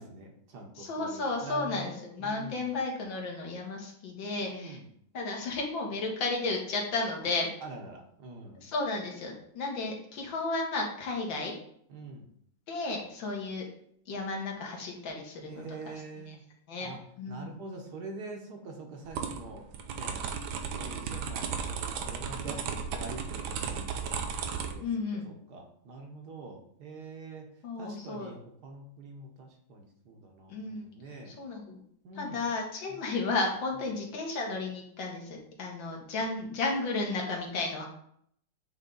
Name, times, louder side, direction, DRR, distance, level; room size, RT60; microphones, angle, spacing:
voice 1, 0.0-2.7 4.4-4.9 7.6-8.6 11.9-12.3 15.5-16.4 16.8-17.0 17.3-19.6 19.9-20.2 20.7-27.5 27.8-31.4 32.0-32.4 32.9-33.0, right 2 dB, 60° right, 2 dB, 1.4 m, -45 dB
voice 2, 0.8-4.8 5.1-7.5 8.6-11.5 12.7-13.7 14.1-15.9 16.3-16.4 16.7-17.5 24.8-25.3 27.6-28.3 30.5-30.9 31.3-31.8 32.2-37.8, left 3 dB, 75° left, 0 dB, 2.0 m, -33 dB
sound 1, 19.1-24.7, right 6 dB, 90° right, 1.5 m, -35 dB
8.0 x 3.3 x 3.8 m, 0.68 s
omnidirectional pair, 2.1 m